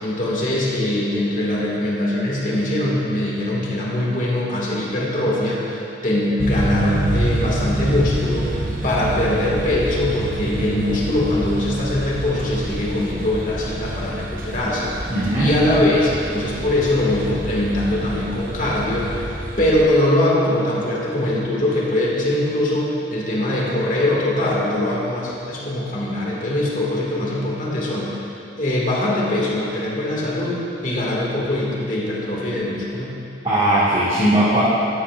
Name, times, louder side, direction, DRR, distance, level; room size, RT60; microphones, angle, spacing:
voice 1, 0.0-19.2 19.6-28.2 28.6-30.6 30.8-33.2, left 1 dB, 45° left, -5 dB, 2.0 m, -22 dB
sound 1, 6.4-19.8, right 1 dB, 45° right, 0.9 m, -27 dB
voice 2, 15.1-15.5 33.4-34.6, right 1 dB, 30° right, -11 dB, 1.7 m, -18 dB
12.5 x 11.5 x 2.5 m, 2.7 s
head